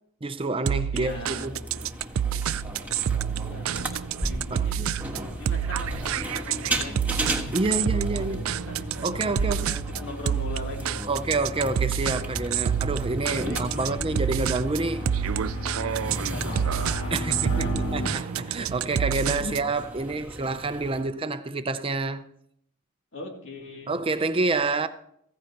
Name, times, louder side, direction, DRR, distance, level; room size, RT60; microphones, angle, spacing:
voice 1, 0.2-1.6 4.5-4.7 7.5-8.5 9.0-9.7 11.1-15.1 17.1-22.2 23.9-24.9, right 3 dB, 25° right, 0.5 m, -28 dB
sound 1, 0.7-19.7, right 9 dB, 80° right, 0.4 m, -29 dB
voice 2, 0.9-1.5 3.3-4.0 4.2-11.0 13.4-14.4 16.3-17.8 19.4-19.6 23.1-24.0, left 2 dB, 65° left, 2.6 m, -40 dB
sound 2, 1.1-21.0, right 1 dB, 10° right, 1.5 m, -37 dB
sound 3, 4.2-18.1, left 1 dB, 80° left, 1.6 m, -36 dB
15.0 x 14.5 x 2.9 m
head